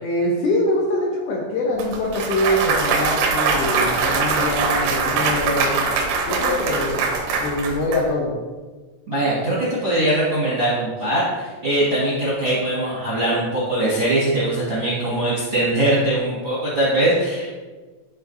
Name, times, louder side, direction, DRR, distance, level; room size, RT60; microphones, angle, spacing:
voice 1, 0.0-5.8 6.3-7.0 7.4-8.4, left 1 dB, 75° left, -3 dB, 2.5 m, -23 dB
Clapping / Cheering / Applause, 1.8-8.0, right 4 dB, 80° right, 3.1 m, -22 dB
voice 2, 9.1-17.5, right 1 dB, 50° right, -8 dB, 1.4 m, -21 dB
12.5 x 4.4 x 2.7 m, 1.3 s
omnidirectional pair, 5.3 m